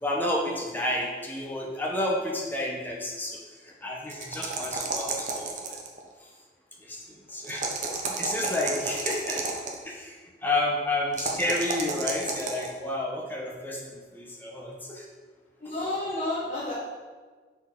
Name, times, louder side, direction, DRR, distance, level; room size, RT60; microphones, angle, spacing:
voice 1, 0.0-5.8 6.2-6.3 6.8-7.7 8.0-9.4 9.8-15.1, left 1 dB, 10° left, -2 dB, 0.8 m, -31 dB
sound 1, 4.1-6.0 7.4-9.8 11.1-12.7, right 4 dB, 45° right, 0.7 m, -31 dB
voice 2, 15.6-16.7, left 2 dB, 45° left, -8 dB, 1.1 m, -30 dB
6.7 x 4.1 x 3.7 m, 1.4 s
head